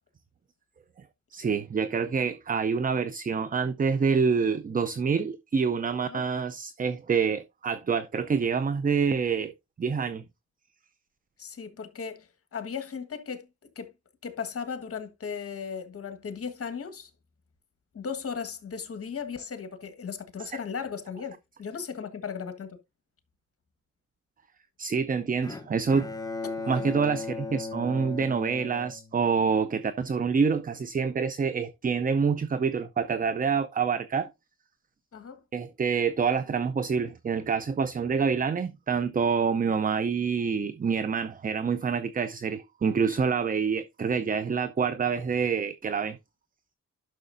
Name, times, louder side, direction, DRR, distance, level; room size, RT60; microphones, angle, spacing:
voice 1, 1.3-9.5 9.8-10.2 24.8-26.1 26.7-34.3 35.5-46.2, right 5 dB, 30° right, 0.5 m, -27 dB
voice 2, 11.4-13.5 13.7-13.9 14.2-17.1 17.9-21.3 21.6-22.7 26.7-26.8 35.1-35.4, left 6 dB, 50° left, 1.5 m, -36 dB
Bowed string instrument, 25.4-29.6, left 3 dB, 10° left, 0.8 m, -37 dB
11.0 x 6.2 x 2.6 m
cardioid pair, 100°, 30 cm